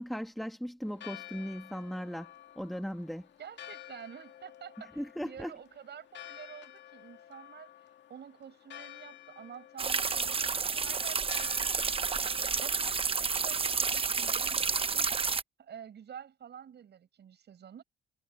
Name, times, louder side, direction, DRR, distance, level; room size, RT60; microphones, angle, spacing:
voice 1, 0.0-3.3 5.0-5.5, equal, ahead, 1.8 m, -38 dB
Church bell, 0.8-14.9, left 12 dB, 65° left, 2.2 m, -52 dB
voice 2, 3.4-7.7 8.1-15.2 15.6-17.8, right 8 dB, 60° right, 6.2 m, -49 dB
sound 1, 9.8-15.4, right 5 dB, 30° right, 0.8 m, -30 dB
cardioid pair, 90°, 20 cm